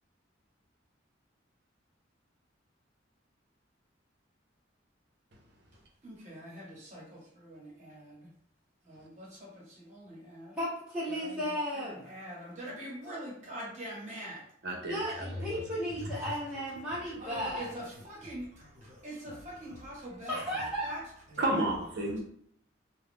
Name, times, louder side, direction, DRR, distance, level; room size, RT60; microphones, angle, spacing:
voice 1, 6.0-8.3 8.9-10.6 11.2-11.3 11.7-14.4 17.2-21.0 21.3-21.6, equal, 40° right, 1.1 m, -44 dB
voice 2, 10.6-12.1 14.8-17.7 20.3-21.0, equal, 5° right, 0.8 m, -35 dB
voice 3, 14.6-15.6 21.4-22.2, right 1 dB, 60° right, 0.7 m, -32 dB
2.4 x 2.3 x 3.5 m
head